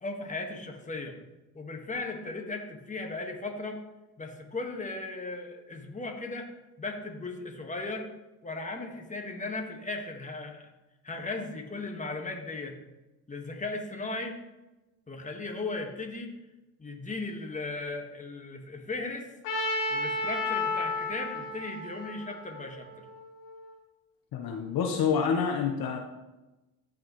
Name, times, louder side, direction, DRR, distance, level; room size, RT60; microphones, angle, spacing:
voice 1, 0.0-1.1 1.5-3.8 4.2-6.5 6.8-8.1 8.4-10.7 11.0-12.8 13.3-14.4 15.1-16.3 16.8-19.3 19.9-22.9, left 3 dB, 15° left, 3 dB, 1.6 m, -37 dB
Trumpet, 19.4-23.5, left 2 dB, 80° left, 3.1 m, -32 dB
voice 2, 24.3-26.0, left 6 dB, 55° left, 3 dB, 1.1 m, -27 dB
14.5 x 5.0 x 3.1 m, 1.0 s
supercardioid pair, 75°, 42 cm